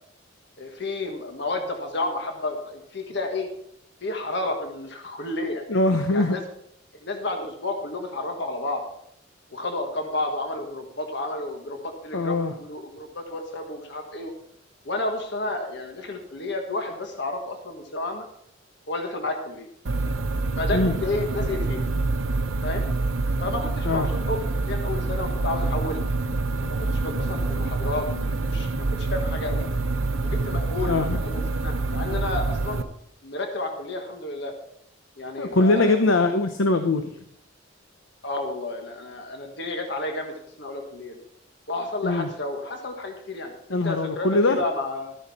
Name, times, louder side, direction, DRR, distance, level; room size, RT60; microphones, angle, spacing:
voice 1, 0.6-3.5 4.0-5.6 6.1-6.4 7.0-8.8 9.5-14.3 14.8-18.2 18.9-19.7 20.6-21.8 22.6-22.8 23.4-26.0 26.6-29.6 30.2-32.9 33.2-34.5 35.2-36.3 38.2-41.2 41.7-45.1, left 2 dB, 60° left, 4 dB, 1.6 m, -31 dB
voice 2, 5.7-6.4 12.1-12.5 20.7-21.0 23.8-24.1 30.9-31.2 35.4-37.2 42.0-42.3 43.7-44.6, left 2 dB, 85° left, 7 dB, 0.9 m, -22 dB
sound 1, 19.9-32.8, right 3 dB, 90° right, 0.8 m, -26 dB
13.5 x 10.0 x 4.3 m, 0.71 s
head